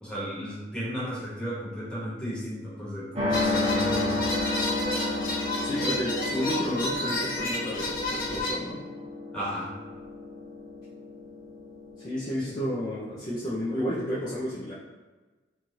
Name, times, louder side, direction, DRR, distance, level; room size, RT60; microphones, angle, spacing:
voice 1, 0.0-4.2 9.3-9.7 12.4-12.5, equal, 5° left, -9 dB, 1.1 m, -34 dB
sound 1, 3.2-14.0, left 2 dB, 35° right, 0.6 m, -32 dB
sound 2, 3.3-8.5, left 1 dB, 55° left, 0.9 m, -31 dB
voice 2, 5.6-8.8 12.0-14.7, equal, 25° left, -9 dB, 0.4 m, -32 dB
3.1 x 2.3 x 2.7 m, 1.2 s
head